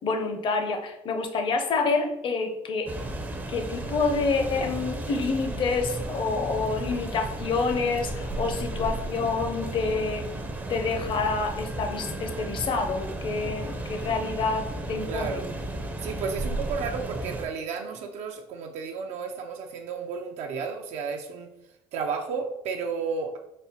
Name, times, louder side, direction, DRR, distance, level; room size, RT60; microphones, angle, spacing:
voice 1, 0.0-2.9 3.5-10.2 10.7-15.4, left 4 dB, 45° left, 5 dB, 0.7 m, -28 dB
sound 1, 2.9-17.5, right 2 dB, 15° right, 0.5 m, -34 dB
voice 2, 15.0-15.5 16.0-21.5 21.9-23.4, right 5 dB, 75° right, 3 dB, 0.5 m, -32 dB
4.1 x 2.0 x 4.0 m, 0.85 s
cardioid pair, 120°, 12 cm